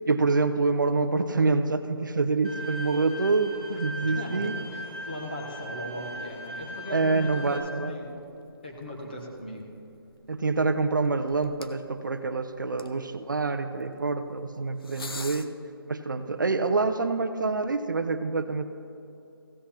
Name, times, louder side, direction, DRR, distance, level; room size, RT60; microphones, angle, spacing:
voice 1, 0.1-4.6 6.9-7.9 10.3-15.5 15.9-18.7, right 3 dB, 55° right, 9 dB, 0.6 m, -26 dB
Bowed string instrument, 2.4-7.6, right 1 dB, 10° right, 1.0 m, -39 dB
sound 1, 3.5-15.5, left 3 dB, 70° left, 0.8 m, -50 dB
voice 2, 4.0-8.2 8.6-9.7, left 1 dB, 25° left, 0 dB, 1.2 m, -38 dB
15.5 x 8.0 x 4.3 m, 2.7 s
hypercardioid pair, 180°, 13 cm